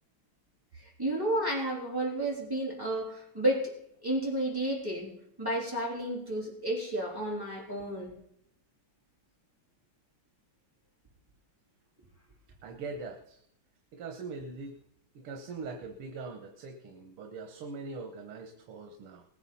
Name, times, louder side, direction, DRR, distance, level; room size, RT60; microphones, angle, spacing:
voice 1, 0.8-3.7 4.0-5.1 5.4-8.1, right 1 dB, 10° right, -4 dB, 3.5 m, -31 dB
voice 2, 12.6-13.4 13.9-14.8 15.2-19.3, right 4 dB, 85° right, 4 dB, 2.1 m, -42 dB
19.5 x 9.9 x 4.3 m, 0.73 s
omnidirectional pair, 2.4 m